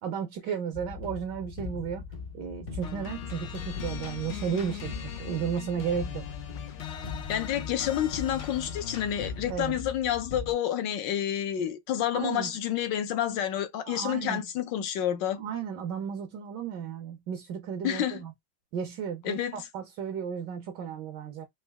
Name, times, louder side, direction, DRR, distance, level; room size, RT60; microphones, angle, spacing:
voice 1, 0.0-2.0 2.3-6.3 9.5-9.8 12.1-12.5 13.9-14.4 15.4-18.3 18.7-21.5, right 7 dB, 65° right, 1.3 m, -34 dB
sound 1, 0.7-10.5, left 5 dB, 40° left, 0.8 m, -40 dB
sound 2, 2.8-9.5, left 9 dB, 90° left, 0.6 m, -41 dB
voice 2, 7.3-15.4 17.8-18.2 19.2-19.6, left 10 dB, 70° left, 1.3 m, -29 dB
4.1 x 2.6 x 3.4 m
omnidirectional pair, 2.3 m